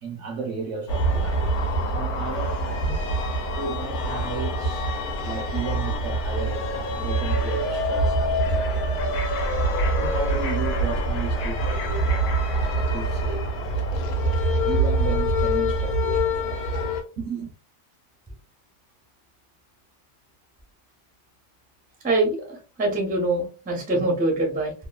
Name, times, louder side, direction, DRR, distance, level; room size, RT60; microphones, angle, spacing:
voice 1, 0.0-1.5 1.8-3.0 3.6-4.9 5.2-9.0 10.0-12.4 12.7-13.8 14.5-17.5, right 5 dB, 65° right, 0.8 m, -34 dB
sound 1, 0.9-17.0, right 1 dB, 75° left, 1.1 m, -25 dB
voice 2, 22.0-24.7, right 2 dB, 10° right, 0.4 m, -24 dB
3.0 x 2.3 x 2.2 m
omnidirectional pair, 1.7 m